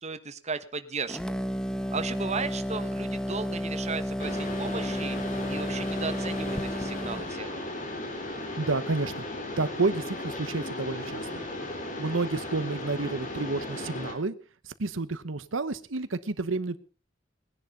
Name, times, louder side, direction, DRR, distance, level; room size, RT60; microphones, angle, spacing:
voice 1, 0.0-1.4 1.9-5.2 5.5-7.6, right 4 dB, 35° right, 10 dB, 1.3 m, -35 dB
sound 1, 1.1-7.3, equal, 5° left, 0.9 m, -32 dB
Mechanisms, 4.2-14.1, left 1 dB, 40° left, 3.9 m, -36 dB
voice 2, 8.6-9.3 9.6-11.3 12.0-14.3 14.6-16.8, right 3 dB, 80° right, 13 dB, 1.0 m, -30 dB
20.0 x 10.5 x 5.3 m, 0.37 s
head